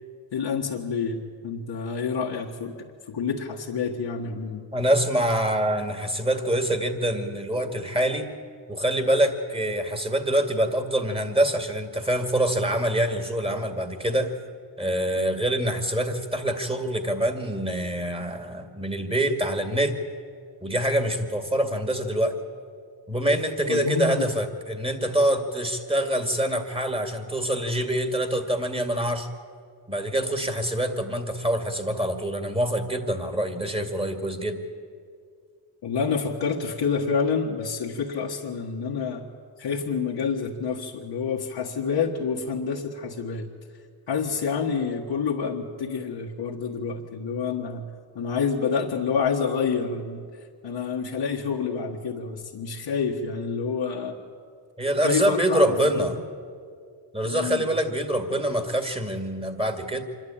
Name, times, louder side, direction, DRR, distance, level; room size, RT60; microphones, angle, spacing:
voice 1, 0.3-4.7 23.7-24.2 35.8-39.2 39.6-43.5 44.1-47.9 48.1-50.2 50.6-54.2 55.0-56.1 57.2-57.6, left 5 dB, 70° left, -2 dB, 1.6 m, -28 dB
voice 2, 4.7-8.3 8.7-14.3 14.8-20.0 20.6-22.4 23.1-29.3 29.9-34.6 54.8-56.1 57.1-60.0, right 1 dB, 10° right, 6 dB, 2.3 m, -25 dB
25.5 x 12.0 x 8.7 m, 2.2 s
cardioid pair, 60°, 46 cm